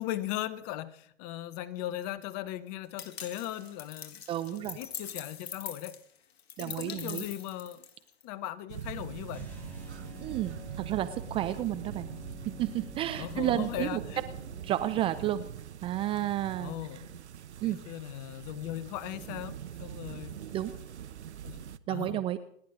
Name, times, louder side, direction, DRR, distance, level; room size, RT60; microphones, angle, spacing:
voice 1, 0.0-4.2 4.5-6.0 6.6-7.8 8.2-9.5 13.2-14.2 16.6-17.2 17.7-20.4 21.4-21.6 21.9-22.2, left 13 dB, 35° left, 1.0 m, -38 dB
sound 1, 3.0-8.2, left 7 dB, 65° left, 2.0 m, -43 dB
voice 2, 4.3-4.8 6.6-7.2 10.2-12.1 12.5-14.0 14.6-15.5 15.8-16.7 17.6-17.8 20.5-20.7 21.9-22.4, right 13 dB, 15° right, 0.5 m, -31 dB
sound 2, 8.7-21.8, right 9 dB, 70° right, 1.0 m, -43 dB
sound 3, 9.3-15.6, left 4 dB, 5° left, 4.4 m, -48 dB
29.0 x 10.5 x 3.8 m
hypercardioid pair, 120°, 34 cm